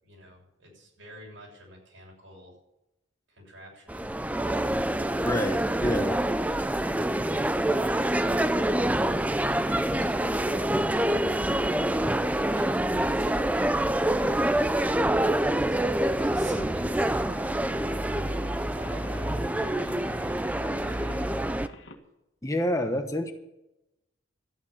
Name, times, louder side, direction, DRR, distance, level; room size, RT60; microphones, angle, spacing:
voice 1, 0.0-2.6 3.3-4.6 9.3-20.5 20.9-21.4, equal, 80° right, -1 dB, 7.0 m, -48 dB
sound 1, 3.9-21.7, right 1 dB, 5° right, 0.4 m, -26 dB
voice 2, 5.2-6.2 6.8-6.9 22.4-23.3, equal, 15° left, 6 dB, 1.0 m, -28 dB
sound 2, 16.0-22.0, left 1 dB, 70° left, 1.8 m, -46 dB
13.0 x 9.4 x 8.6 m, 0.92 s
head